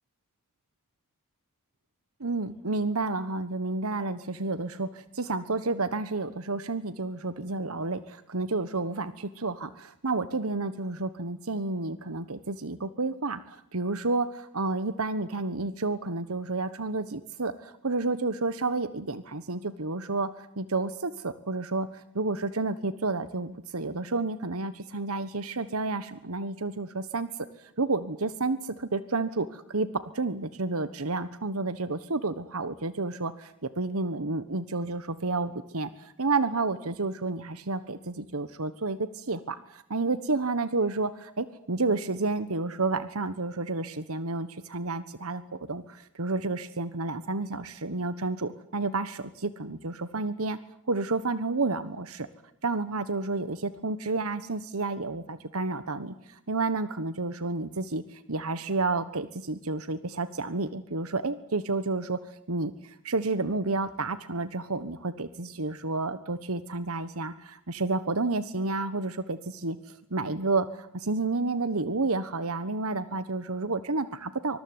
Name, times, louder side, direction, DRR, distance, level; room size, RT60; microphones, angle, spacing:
voice 1, 2.2-27.3 27.6-29.9 30.1-50.6 50.9-52.3 52.6-62.2 62.5-69.8 70.1-74.6, right 3 dB, 80° right, 13 dB, 1.3 m, -30 dB
25.0 x 21.0 x 9.6 m, 0.71 s
head